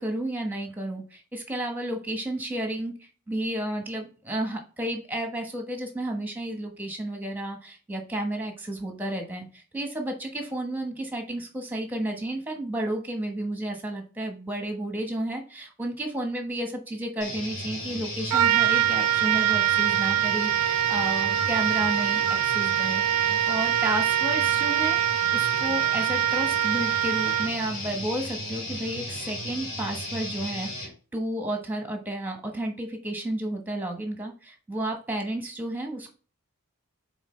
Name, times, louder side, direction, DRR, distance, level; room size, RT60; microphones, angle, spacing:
voice 1, 0.0-23.0 23.5-36.1, right 1 dB, 10° right, 3 dB, 1.2 m, -32 dB
sound 1, 17.2-30.9, left 1 dB, 50° left, 3.5 m, -35 dB
Trumpet, 18.3-27.7, right 12 dB, 90° right, 0.3 m, -24 dB
8.3 x 3.6 x 3.2 m, 0.38 s
head